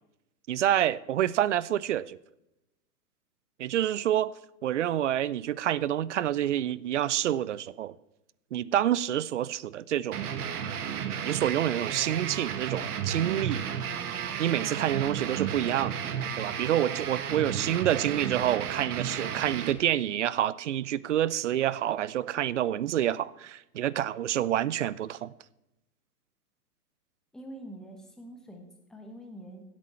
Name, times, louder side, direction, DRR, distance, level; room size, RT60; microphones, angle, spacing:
voice 1, 0.5-2.2 3.6-4.3 4.6-7.9 8.5-10.2 11.2-13.7 14.4-16.0 16.3-25.3, right 11 dB, 50° right, 0.5 m, -28 dB
sound 1, 10.1-19.7, right 8 dB, 65° right, 1.6 m, -33 dB
voice 2, 27.3-29.6, right 1 dB, ahead, 1.1 m, -45 dB
16.5 x 8.5 x 4.4 m
hypercardioid pair, 155°, 48 cm